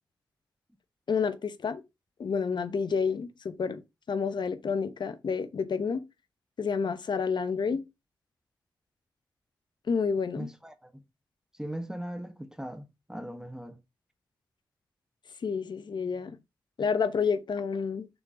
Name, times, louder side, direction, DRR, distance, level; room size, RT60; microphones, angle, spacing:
voice 1, 1.1-1.8 2.2-3.8 4.1-6.0 6.6-7.8 9.9-10.5 15.4-16.4 16.8-18.1, left 5 dB, 65° left, 0.9 m, -29 dB
voice 2, 10.3-10.9 11.6-13.8, right 1 dB, 5° right, 1.3 m, -39 dB
6.2 x 3.8 x 5.1 m
supercardioid pair, 40°, 8 cm